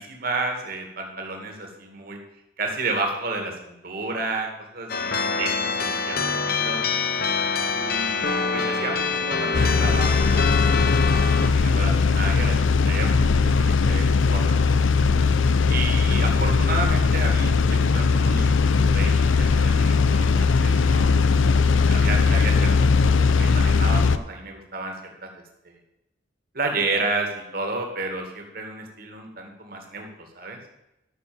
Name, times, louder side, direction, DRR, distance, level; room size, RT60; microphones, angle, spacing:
voice 1, 0.0-2.2 2.6-6.8 7.7-14.6 15.7-21.4 21.9-25.0 25.2-25.3 25.6-25.8 26.5-30.1 30.4-30.6, right 3 dB, 50° right, 3 dB, 2.3 m, -32 dB
sound 1, 4.9-11.5, left 5 dB, 50° left, 1.0 m, -25 dB
sound 2, 9.5-24.2, left 4 dB, 75° left, 0.6 m, -19 dB
13.0 x 6.6 x 7.1 m, 0.90 s
head